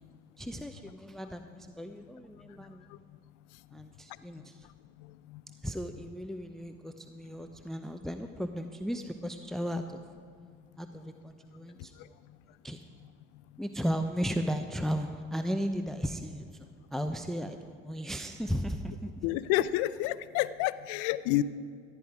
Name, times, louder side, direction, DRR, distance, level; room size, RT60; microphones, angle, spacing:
voice 1, 0.4-1.4 1.8-2.9 3.7-4.7 5.6-10.0 10.8-12.2 12.6-12.8 13.6-19.1, equal, ahead, 7 dB, 0.7 m, -35 dB
voice 2, 19.2-21.4, left 15 dB, 75° left, 16 dB, 0.6 m, -28 dB
14.5 x 9.9 x 4.8 m, 2.2 s
hypercardioid pair, 60°, 32 cm